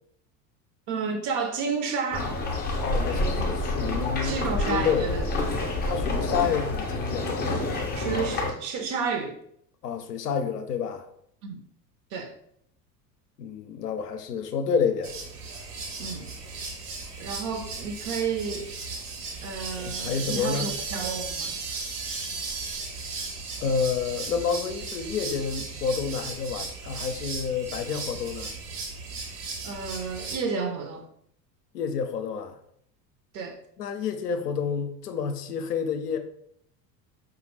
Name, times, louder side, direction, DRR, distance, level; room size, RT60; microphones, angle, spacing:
voice 1, 0.9-2.3 4.2-5.2 6.4-6.5 7.9-9.4 11.4-11.6 12.1-12.3 16.0-16.3 17.2-18.7 19.4-21.6 29.6-31.0 33.3-33.6, right 5 dB, 40° right, 5 dB, 0.6 m, -31 dB
sound 1, 2.1-8.5, left 2 dB, 20° left, 0.5 m, -28 dB
voice 2, 2.8-4.4 4.7-5.1 5.8-7.3 9.8-11.0 13.4-15.1 19.8-20.7 23.6-28.5 31.7-32.6 33.8-36.2, left 6 dB, 70° left, 7 dB, 0.6 m, -29 dB
sound 2, 15.0-30.4, right 4 dB, 60° right, 1.0 m, -36 dB
4.8 x 2.3 x 3.1 m, 0.70 s
figure-of-eight pair, 70°, 50 cm